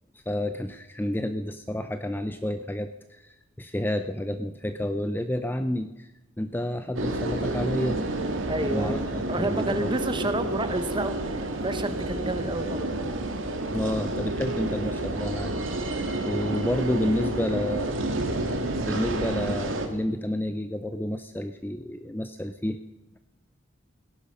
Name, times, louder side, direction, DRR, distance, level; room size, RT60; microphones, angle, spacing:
voice 1, 0.1-6.1 6.4-8.0 8.7-9.0 9.4-10.0 13.7-15.8 16.2-18.0 18.9-22.8, left 1 dB, 10° left, 8 dB, 0.5 m, -30 dB
sound 1, 6.9-19.9, right 1 dB, 70° right, 2.0 m, -29 dB
voice 2, 8.5-12.9, right 2 dB, 25° right, 10 dB, 1.0 m, -30 dB
17.5 x 11.0 x 5.5 m, 0.99 s
head